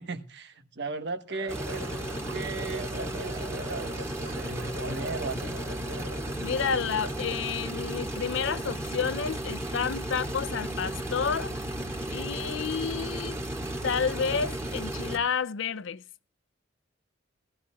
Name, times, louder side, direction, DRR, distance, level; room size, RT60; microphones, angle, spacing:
voice 1, 0.0-1.8 2.3-5.6, right 3 dB, 60° right, 1.3 m, -37 dB
sound 1, 1.3-6.7, right 1 dB, 85° right, 1.0 m, -42 dB
sound 2, 1.5-15.2, right 1 dB, 15° right, 2.2 m, -34 dB
voice 2, 6.4-11.5 12.1-13.4 13.8-16.0, left 6 dB, 70° left, 0.5 m, -30 dB
18.0 x 14.5 x 2.4 m
head